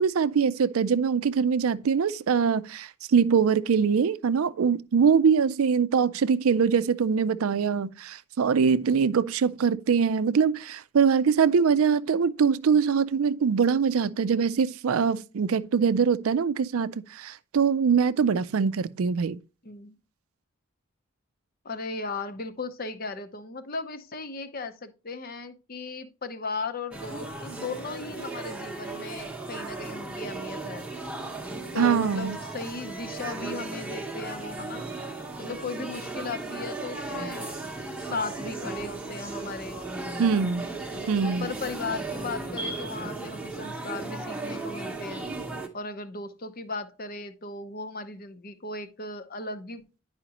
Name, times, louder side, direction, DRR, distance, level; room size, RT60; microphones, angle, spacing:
voice 1, 0.0-19.4 31.8-32.4 40.2-40.7 41.1-41.5, right 6 dB, 75° right, 0.4 m, -23 dB
voice 2, 19.6-20.0 21.6-30.9 31.7-34.9 35.4-37.5 38.0-39.8 41.2-45.3 45.7-49.8, left 3 dB, 40° left, 0.7 m, -36 dB
sound 1, 26.9-45.7, right 3 dB, 5° right, 0.8 m, -36 dB
10.5 x 5.0 x 2.9 m
head